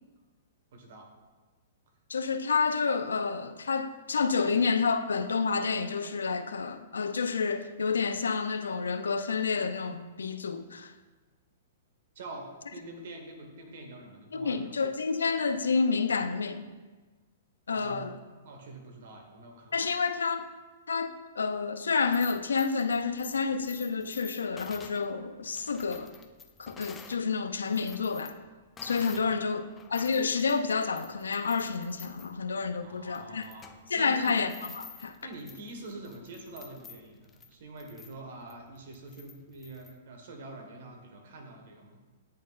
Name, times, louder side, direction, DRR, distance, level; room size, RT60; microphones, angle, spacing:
voice 1, 0.7-1.1 4.4-4.5 12.1-14.7 17.7-18.0 18.4-19.9 29.1-29.4 32.8-34.4 35.2-42.0, right 2 dB, 65° right, 1.4 m, -45 dB
voice 2, 2.1-10.9 14.3-16.7 17.7-18.1 19.7-20.4 20.9-26.2 26.6-28.3 28.8-29.6 29.9-33.5 33.9-35.2, left 5 dB, 85° left, 0.4 m, -29 dB
sound 1, 22.0-27.2 27.6-29.3 29.7-39.9, left 6 dB, 20° left, 0.5 m, -51 dB
10.5 x 4.2 x 2.4 m
hypercardioid pair, 120°, 0 cm